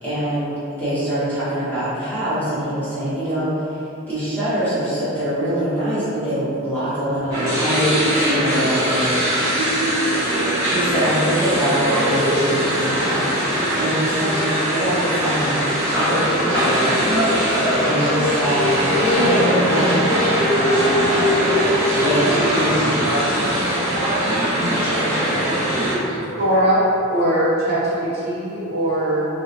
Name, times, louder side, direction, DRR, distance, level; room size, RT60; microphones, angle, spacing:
voice 1, 0.0-0.5 0.8-3.8 4.1-9.2 10.7-17.0 17.8-20.0 21.9-23.1, right 1 dB, 5° left, -14 dB, 1.2 m, -24 dB
sound 1, 7.3-25.9, equal, 10° right, 1.3 m, -20 dB
voice 2, 24.0-26.4, left 1 dB, 60° left, -9 dB, 0.9 m, -32 dB
voice 3, 26.4-26.8 27.1-29.3, right 1 dB, 45° right, -9 dB, 0.8 m, -20 dB
3.2 x 2.8 x 2.8 m, 2.8 s
head